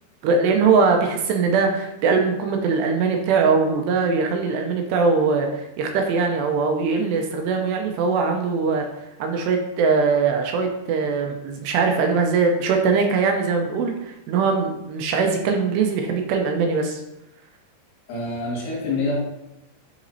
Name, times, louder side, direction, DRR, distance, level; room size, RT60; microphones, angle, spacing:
voice 1, 0.2-8.9 9.2-17.0, right 4 dB, 80° right, 3 dB, 2.6 m, -21 dB
voice 2, 18.1-19.2, left 2 dB, 60° left, -5 dB, 3.2 m, -26 dB
10.0 x 4.0 x 2.7 m, 0.93 s
omnidirectional pair, 5.3 m